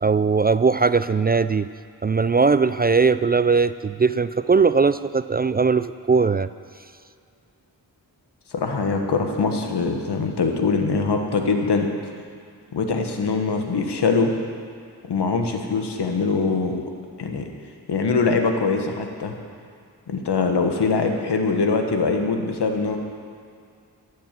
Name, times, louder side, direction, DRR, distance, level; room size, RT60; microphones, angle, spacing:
voice 1, 0.0-1.7 2.0-6.5, right 4 dB, 25° right, 13 dB, 0.3 m, -19 dB
voice 2, 8.5-11.9 12.7-14.3 15.1-16.8 17.2-17.5 17.9-19.3 20.1-23.0, left 4 dB, 80° left, 4 dB, 1.5 m, -22 dB
13.5 x 8.3 x 7.5 m, 2.3 s
cardioid pair, 45°, 40 cm